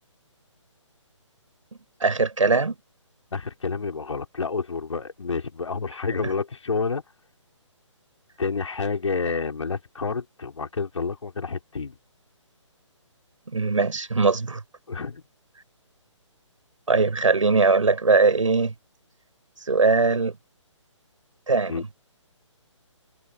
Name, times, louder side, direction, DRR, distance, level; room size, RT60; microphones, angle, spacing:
voice 1, 2.0-2.7 13.5-14.6 16.9-18.7 19.7-20.3 21.5-21.8, right 4 dB, 80° right, 7.8 m, -20 dB
voice 2, 3.3-7.0 8.4-11.9 14.9-15.2 21.7-21.8, left 4 dB, 70° left, 5.8 m, -29 dB
figure-of-eight pair, 145°, 16 cm